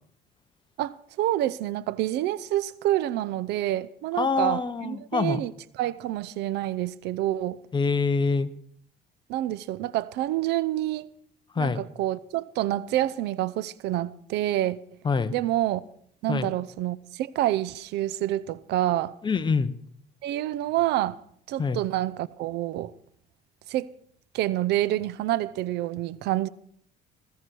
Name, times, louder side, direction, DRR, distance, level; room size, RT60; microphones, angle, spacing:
voice 1, 0.8-7.6 9.3-11.1 11.6-14.8 15.3-15.8 16.2-19.2 20.2-21.2 21.5-22.9 23.7-23.9 24.3-26.5, right 14 dB, 80° right, 0.7 m, -28 dB
voice 2, 4.2-5.4 7.7-8.5 11.6-11.8 15.0-15.3 16.3-16.5 19.2-19.7 21.6-21.8, left 4 dB, 25° left, 1.0 m, -25 dB
20.5 x 14.5 x 4.6 m
cardioid pair, 110°, 17 cm